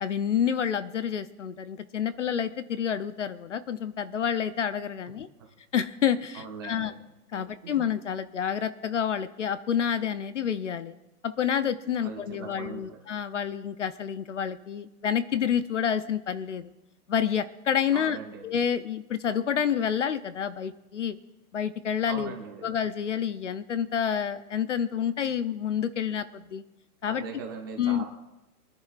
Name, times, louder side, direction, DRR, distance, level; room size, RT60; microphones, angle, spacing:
voice 1, 0.0-5.3 5.7-6.9 7.3-11.0 11.2-16.7 17.1-18.2 18.4-21.2 21.5-22.4 22.6-26.6 27.0-27.2 27.8-28.0, left 8 dB, 50° left, 13 dB, 0.6 m, -28 dB
voice 2, 6.3-7.0 7.3-7.8 12.0-13.0 17.9-18.4 22.1-22.7 27.0-28.0, right 5 dB, 15° right, 0 dB, 0.9 m, -40 dB
23.5 x 10.5 x 2.5 m, 0.97 s
hypercardioid pair, 175°, 46 cm